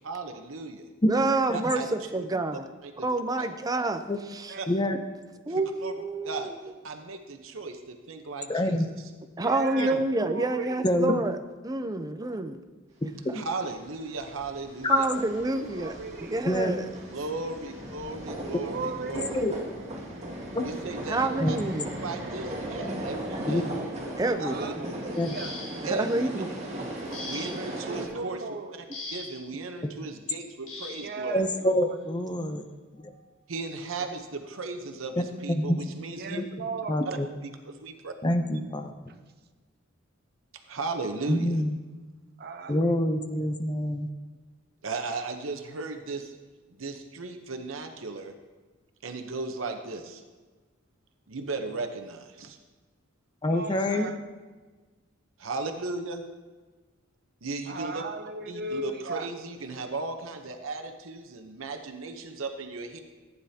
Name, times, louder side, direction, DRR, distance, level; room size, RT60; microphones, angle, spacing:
voice 1, 0.0-0.9 1.5-1.9 2.8-3.1 3.4-3.5 4.6-4.7 5.5-5.9 6.2-6.5 6.8-8.8 9.7-10.0 13.3-15.1 17.1-19.4 20.6-21.6 22.0-23.6 24.4-25.2 25.8-26.3 27.2-28.4 29.1-31.4 33.5-36.4 37.1-37.2 37.4-38.1 40.7-41.6 44.8-46.3 46.8-48.3 49.0-50.2 51.3-52.6 55.4-56.2 57.4-58.0 58.5-63.0, right 3 dB, 85° right, 6 dB, 0.9 m, -36 dB
voice 2, 1.1-2.6 3.0-4.0 4.3-4.5 5.5-6.5 9.4-11.4 11.6-12.6 14.9-16.9 21.1-21.9 24.2-24.5 24.8-24.9 25.8-26.5 27.3-27.6, right 2 dB, 20° right, 9 dB, 0.5 m, -28 dB
voice 3, 4.7-5.0 8.5-8.9 10.8-11.1 13.3-13.4 14.8-15.0 16.5-16.7 19.1-19.5 20.5-20.6 21.4-21.6 23.5-23.6 25.2-25.3 31.3-32.6 33.0-33.1 35.2-35.8 36.3-37.3 38.2-38.9 41.3-41.8 42.7-44.1 53.4-54.1, left 1 dB, 20° left, 7 dB, 0.6 m, -26 dB
voice 4, 9.4-10.8 15.6-16.4 18.6-19.6 21.2-21.4 24.5-25.5 27.9-28.7 31.0-32.0 34.0-34.1 36.2-37.0 42.4-42.8 53.4-54.2 57.7-59.3, right 3 dB, 50° right, 8 dB, 0.7 m, -37 dB
sound 1, 13.7-28.1, right 1 dB, 35° right, 2.0 m, -37 dB
sound 2, 25.1-26.0 27.1-27.8 28.9-29.5 30.7-31.1 32.3-32.5 33.0-33.2, left 2 dB, 90° left, 2.1 m, -40 dB
15.0 x 9.5 x 2.8 m, 1.3 s
head